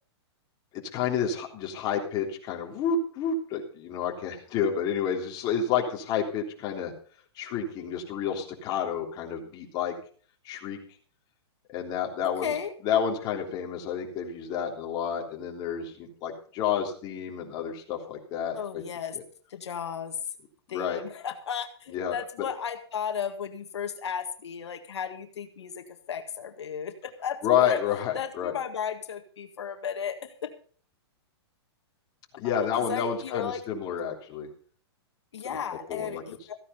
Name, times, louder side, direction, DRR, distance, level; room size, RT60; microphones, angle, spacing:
voice 1, 0.7-6.9 7.4-9.9 10.4-10.8 11.7-12.5 12.8-18.8 19.1-19.2 20.7-21.0 21.9-22.2 27.4-28.5 32.4-34.5 35.9-36.2, left 7 dB, 30° left, 1 dB, 3.3 m, -29 dB
voice 2, 12.2-12.7 18.5-19.2 19.5-20.2 20.7-27.8 28.1-30.5 32.4-33.6 35.3-36.6, left 8 dB, 90° left, 7 dB, 1.8 m, -34 dB
15.0 x 9.9 x 5.4 m, 0.43 s
hypercardioid pair, 150°, 14 cm